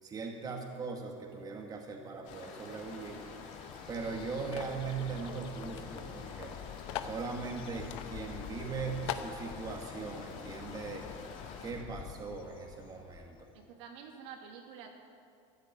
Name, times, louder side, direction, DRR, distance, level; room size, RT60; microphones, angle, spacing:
voice 1, 0.0-3.2 3.9-6.6 7.0-11.1 11.6-13.5, right 5 dB, 25° right, 1 dB, 1.9 m, -40 dB
sound 1, 2.2-11.7, left 4 dB, 55° left, 3.0 m, -48 dB
Bird, 2.3-13.7, left 12 dB, 35° left, 0.4 m, -48 dB
sound 2, 4.5-4.8 5.7-5.8 6.1-6.2 6.9-7.2 7.9-8.1 8.5-8.6 9.1-9.4, left 11 dB, 75° left, 1.1 m, -38 dB
voice 2, 13.5-14.9, right 7 dB, 65° right, 2 dB, 2.4 m, -48 dB
13.5 x 10.5 x 9.1 m, 2.3 s
supercardioid pair, 120°, 16 cm